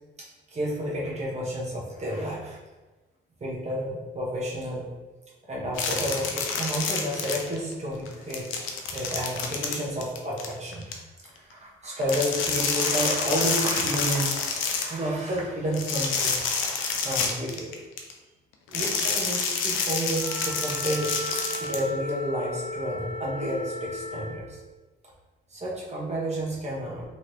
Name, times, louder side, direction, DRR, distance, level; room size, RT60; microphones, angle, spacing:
voice 1, 0.2-2.6 3.4-4.9 5.5-8.5 8.9-10.9 11.2-16.4 17.0-17.8 18.7-24.6 25.5-27.0, equal, 35° right, -4 dB, 0.9 m, -31 dB
sound 1, 5.8-7.7 8.1-10.9 12.0-15.0 15.7-18.1 18.7-21.8, left 5 dB, 90° left, 0.5 m, -28 dB
Wind instrument woodwind instrument, 20.1-24.4, left 1 dB, 55° left, 0.9 m, -36 dB
3.1 x 3.0 x 2.6 m, 1.2 s
cardioid pair, 90°, 20 cm